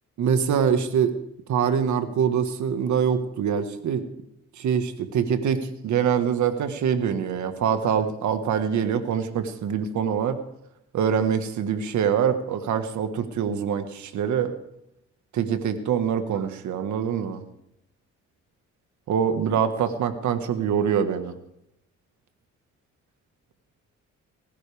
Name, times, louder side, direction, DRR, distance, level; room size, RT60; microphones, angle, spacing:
voice 1, 0.2-1.2 1.5-4.1 4.6-10.4 10.9-14.6 15.3-17.4 19.1-21.4, right 7 dB, 70° right, 9 dB, 1.6 m, -24 dB
19.5 x 16.0 x 3.5 m, 0.82 s
cardioid pair, 90°, 30 cm